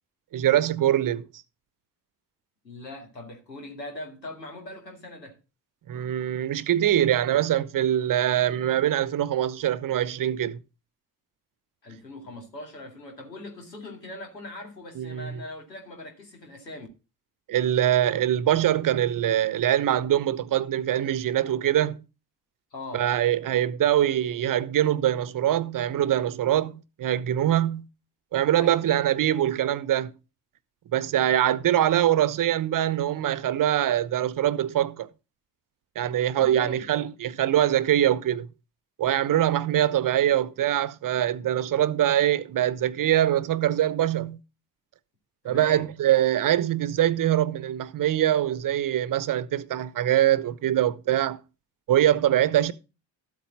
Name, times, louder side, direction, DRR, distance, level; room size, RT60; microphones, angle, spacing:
voice 1, 0.3-1.3 5.9-10.6 15.0-15.4 17.5-22.0 22.9-27.9 28.3-30.1 30.9-35.1 36.0-38.5 39.0-44.4 45.4-51.4 51.9-52.7, right 11 dB, 40° right, 0.9 m, -23 dB
voice 2, 2.6-5.4 11.8-16.9 22.7-23.1 28.6-28.9 36.4-36.8 45.4-45.9, left 1 dB, 85° left, 2.4 m, -41 dB
13.5 x 8.3 x 3.9 m
figure-of-eight pair, 45°, 48 cm